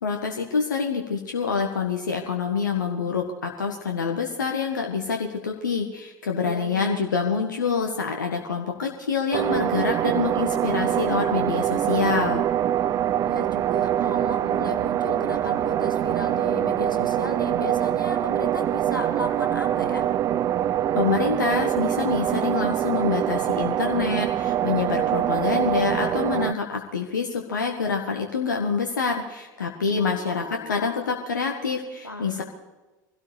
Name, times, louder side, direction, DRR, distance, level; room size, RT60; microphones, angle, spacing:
voice 1, 0.0-12.4 20.9-32.4, left 5 dB, 75° left, 3 dB, 1.6 m, -26 dB
voice 2, 6.4-7.4 13.3-20.1 29.9-31.1 32.0-32.4, left 2 dB, 90° left, 3 dB, 2.0 m, -35 dB
sound 1, 9.3-26.5, right 11 dB, 30° right, 0.4 m, -24 dB
25.0 x 17.0 x 3.4 m, 1.2 s
figure-of-eight pair, 75°, 10 cm